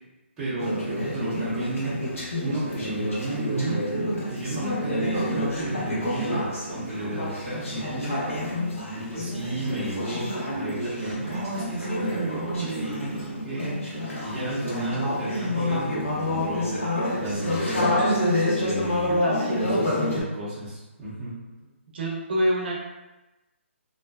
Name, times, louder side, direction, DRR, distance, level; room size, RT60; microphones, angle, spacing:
voice 1, 0.4-2.0 2.4-8.5 8.9-16.8 17.2-17.9 18.6-19.2 19.6-21.4, right 2 dB, 10° right, -12 dB, 0.5 m, -33 dB
Conversation / Chatter, 0.6-20.2, left 1 dB, 90° left, 0.9 m, -28 dB
voice 2, 19.1-19.5 21.9-22.7, equal, 50° right, -3 dB, 0.6 m, -26 dB
2.6 x 2.1 x 2.2 m, 1.0 s
hypercardioid pair, 165°, 7 cm